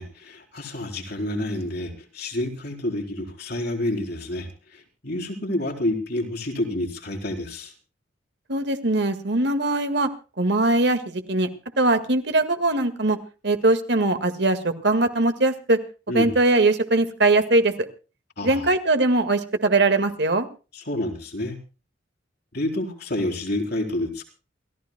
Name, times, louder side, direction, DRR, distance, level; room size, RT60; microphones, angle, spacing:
voice 1, 0.0-7.7 16.1-16.3 18.4-18.7 20.7-21.6 22.5-24.2, left 1 dB, 60° left, 0 dB, 4.0 m, -29 dB
voice 2, 8.5-10.1 10.4-11.5 11.8-13.2 13.4-15.8 16.1-17.7 18.4-20.5, right 2 dB, 65° right, 8 dB, 1.8 m, -21 dB
28.5 x 14.5 x 2.2 m, 0.33 s
head